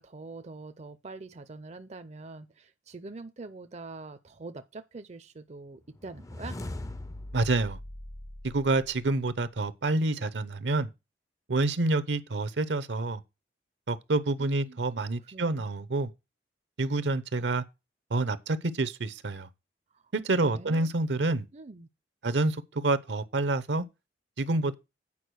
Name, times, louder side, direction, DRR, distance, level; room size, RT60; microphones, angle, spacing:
voice 1, 0.0-6.6 14.4-14.8 15.3-15.8 19.9-20.0 20.4-20.9 21.5-21.9, right 3 dB, 40° right, 0.5 m, -44 dB
sound 1, 6.0-9.2, left 1 dB, 20° left, 0.5 m, -41 dB
voice 2, 7.3-7.8 8.4-10.9 11.5-13.2 13.9-16.1 16.8-17.6 18.1-19.5 20.1-21.5 22.2-23.9 24.4-24.7, right 2 dB, 70° right, 0.8 m, -28 dB
8.5 x 4.9 x 6.2 m
head